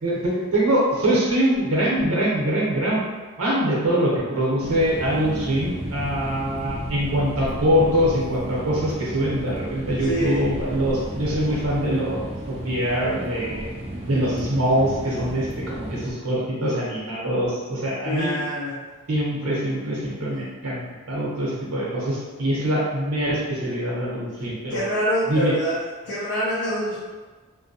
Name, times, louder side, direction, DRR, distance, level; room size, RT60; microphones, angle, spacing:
voice 1, 0.0-3.0 3.4-13.6 14.1-18.4 19.1-24.8 25.3-25.5, equal, 85° right, -4 dB, 0.8 m, -23 dB
sound 1, 4.6-16.1, right 1 dB, 25° right, 0.3 m, -33 dB
voice 2, 10.0-10.4 18.0-18.8 24.7-25.8 26.0-27.0, equal, 55° left, -7 dB, 0.5 m, -25 dB
2.6 x 2.1 x 2.7 m, 1.4 s
head